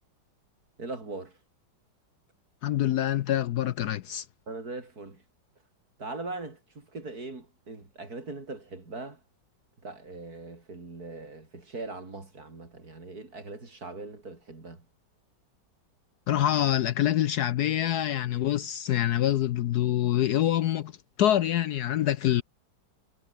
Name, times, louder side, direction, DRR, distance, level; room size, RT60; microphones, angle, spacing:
voice 1, 0.8-1.4 4.5-5.2 6.0-9.2 9.8-14.8, right 3 dB, 50° right, 5.1 m, -40 dB
voice 2, 2.6-4.2 16.3-20.9 21.2-22.4, left 12 dB, 70° left, 1.1 m, -25 dB
omnidirectional pair, 2.0 m